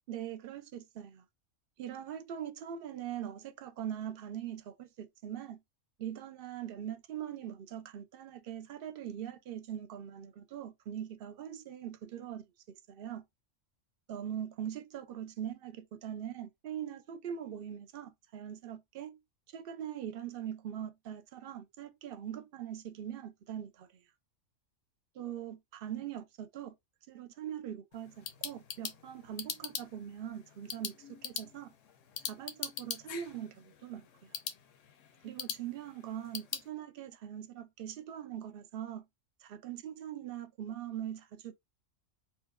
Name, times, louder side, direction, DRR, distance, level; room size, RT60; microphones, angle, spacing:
voice 1, 0.1-1.2 1.8-5.6 6.0-12.4 12.9-13.2 14.1-19.2 19.5-24.0 25.2-26.2 26.5-26.7 27.1-31.7 32.2-34.4 35.2-39.0 39.4-41.5, right 10 dB, 60° right, 0.6 m, -42 dB
sound 1, 27.9-36.7, left 8 dB, 80° left, 1.0 m, -43 dB
4.5 x 2.1 x 2.2 m
omnidirectional pair, 1.3 m